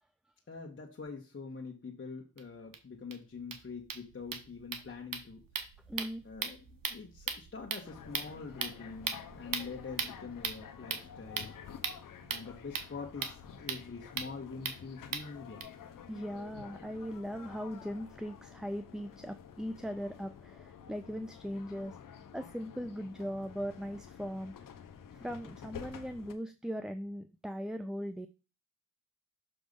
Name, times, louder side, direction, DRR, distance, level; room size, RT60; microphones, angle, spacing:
voice 1, 0.5-5.4 6.2-11.6 12.3-15.7, left 4 dB, 35° left, -1 dB, 1.5 m, -45 dB
sound 1, 2.4-2.5 2.7-2.8 3.1-3.2 3.4-15.6, right 6 dB, 65° right, 1.2 m, -40 dB
voice 2, 5.9-6.2 16.1-22.0 22.3-24.5 25.1-28.3, equal, ahead, 9 dB, 0.5 m, -39 dB
sound 2, 7.9-26.3, left 7 dB, 65° left, 0.9 m, -50 dB
6.6 x 3.4 x 5.3 m, 0.32 s
supercardioid pair, 55°, 36 cm